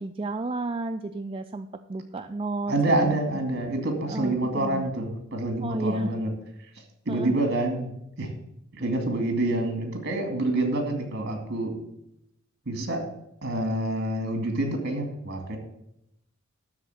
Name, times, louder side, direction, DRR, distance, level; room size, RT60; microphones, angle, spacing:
voice 1, 0.0-3.4 4.1-4.9 5.6-6.1 7.1-7.4, right 2 dB, 25° right, 6 dB, 0.3 m, -32 dB
voice 2, 2.7-6.3 7.1-7.9 8.2-8.3 8.7-11.8 12.7-13.1 13.4-15.6, right 1 dB, 55° right, 4 dB, 2.4 m, -27 dB
12.5 x 4.2 x 8.2 m, 0.81 s
head